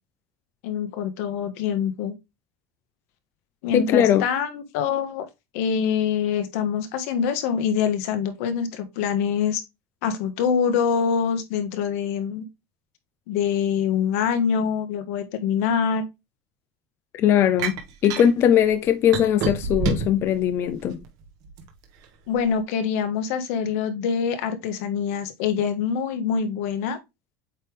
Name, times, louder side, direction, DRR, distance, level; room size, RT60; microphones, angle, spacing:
voice 1, 0.6-2.1 3.6-5.3 5.5-9.6 10.0-12.4 13.3-16.0 22.3-27.0, left 7 dB, 70° left, 1.4 m, -25 dB
voice 2, 3.7-4.2 17.1-21.0, left 9 dB, 30° left, 0.4 m, -20 dB
sound 1, 17.6-18.3 19.1-20.2 20.8-21.7, right 4 dB, 50° right, 1.4 m, -26 dB
8.3 x 3.4 x 3.3 m
cardioid pair, 165°, 8 cm